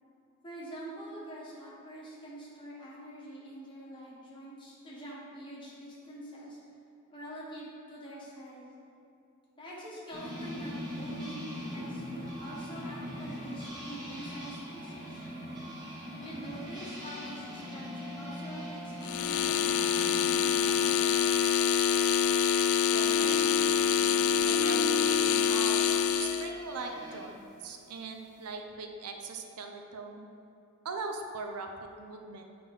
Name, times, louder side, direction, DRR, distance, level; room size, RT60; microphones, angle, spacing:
voice 1, 0.4-6.6 7.1-8.7 9.6-15.2 16.1-20.2 20.5-21.2, right 1 dB, 20° left, -6 dB, 1.4 m, -45 dB
sound 1, 10.1-27.3, equal, 20° right, 1.4 m, -41 dB
sound 2, 19.0-26.5, left 8 dB, 70° left, 0.3 m, -26 dB
voice 2, 22.9-23.8 24.4-25.8 26.2-30.3 30.8-32.4, right 4 dB, 90° right, 4 dB, 0.7 m, -40 dB
7.7 x 3.8 x 5.3 m, 2.6 s
head